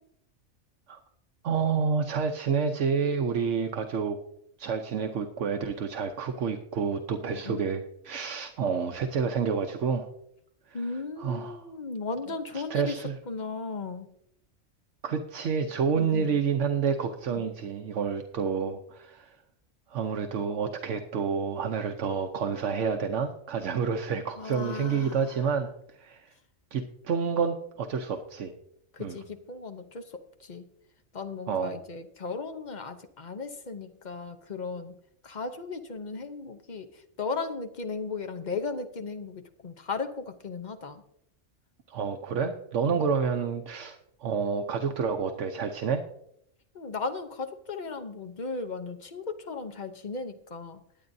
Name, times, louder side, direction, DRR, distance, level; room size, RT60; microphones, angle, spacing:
voice 1, 1.4-4.2 4.6-10.1 10.7-10.8 11.2-11.7 12.5-13.2 15.0-19.4 19.9-25.7 25.9-26.3 26.7-28.5 29.0-29.2 31.5-31.8 41.9-46.0, right 6 dB, 75° right, 5 dB, 1.1 m, -29 dB
voice 2, 7.3-7.6 10.7-13.0 13.3-14.1 15.9-16.4 17.4-17.5 24.4-25.3 28.9-30.7 31.1-41.0 46.7-50.8, left 4 dB, 40° left, 8 dB, 0.9 m, -36 dB
21.0 x 8.6 x 2.7 m, 0.76 s
omnidirectional pair, 1.3 m